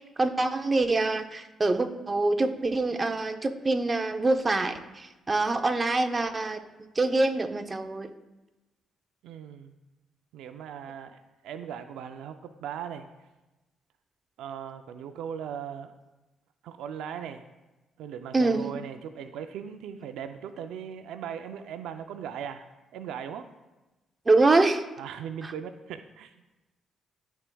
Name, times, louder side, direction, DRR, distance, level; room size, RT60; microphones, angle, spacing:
voice 1, 0.2-6.6 7.0-8.1 18.3-18.6 24.3-24.8, right 2 dB, 25° right, 6 dB, 0.6 m, -25 dB
voice 2, 9.2-9.8 10.3-13.1 14.4-15.9 16.6-17.4 18.0-23.5 25.0-26.3, right 8 dB, 85° right, 8 dB, 0.4 m, -39 dB
13.5 x 4.6 x 2.3 m, 1.1 s
cardioid pair, 90°, 0 cm